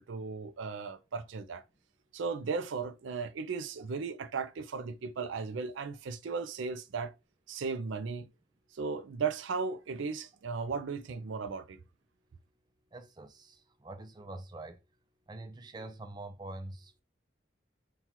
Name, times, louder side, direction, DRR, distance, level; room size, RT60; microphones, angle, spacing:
voice 1, 0.0-1.6 2.1-7.1 7.5-8.3 8.7-11.8, right 5 dB, 80° right, 0.4 m, -36 dB
voice 2, 12.9-14.8 15.3-17.0, right 2 dB, 20° right, 0.4 m, -45 dB
5.7 x 2.3 x 2.9 m
head